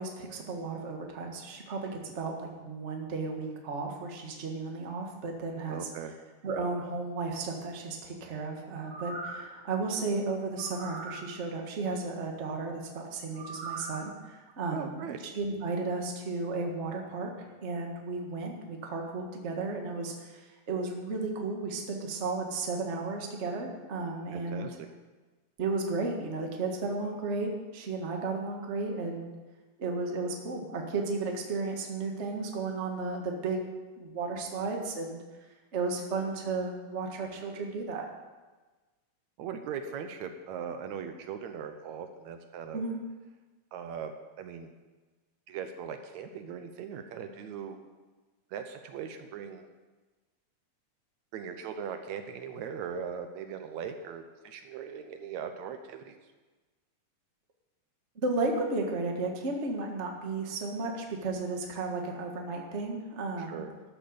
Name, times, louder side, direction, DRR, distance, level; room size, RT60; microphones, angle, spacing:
voice 1, 0.0-5.9 6.4-17.3 17.6-24.7 25.6-29.3 29.8-33.6 34.0-35.2 35.7-38.0 42.7-43.0 58.1-63.6, right 3 dB, 30° right, 1 dB, 1.3 m, -34 dB
voice 2, 5.7-6.1 14.7-15.2 24.3-24.9 39.4-42.9 43.7-44.1 44.4-44.7 45.5-47.8 48.5-49.7 51.3-56.2 63.4-63.7, right 7 dB, 75° right, 7 dB, 2.0 m, -39 dB
sound 1, 8.8-9.5 10.6-11.2 13.3-14.0 14.5-14.6, right 3 dB, 60° right, 2.6 m, -40 dB
13.0 x 7.8 x 6.9 m, 1.3 s
omnidirectional pair, 3.4 m